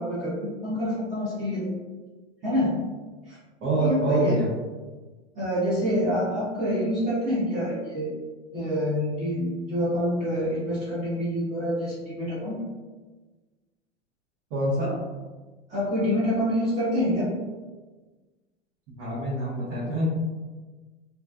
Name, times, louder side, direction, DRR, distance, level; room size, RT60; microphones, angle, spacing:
voice 1, 0.0-1.7 2.4-2.9 3.3-3.4 3.8-4.4 5.4-8.1 8.5-12.6 15.7-17.4, equal, 20° right, -10 dB, 0.7 m, -27 dB
voice 2, 3.6-4.5 14.5-15.0 19.0-20.1, right 1 dB, 65° right, -10 dB, 1.1 m, -25 dB
2.5 x 2.1 x 2.4 m, 1.3 s
hypercardioid pair, 110°, 37 cm